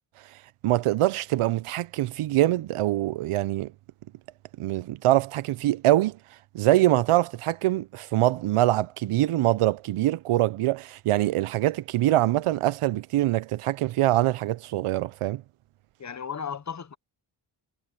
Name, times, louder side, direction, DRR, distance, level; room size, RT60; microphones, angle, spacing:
voice 1, 0.6-3.7 4.6-6.2 6.5-15.4, right 15 dB, 85° right, 0.6 m, -24 dB
voice 2, 16.0-17.0, left 7 dB, 35° left, 0.9 m, -35 dB
wide cardioid pair, 130°, 50 cm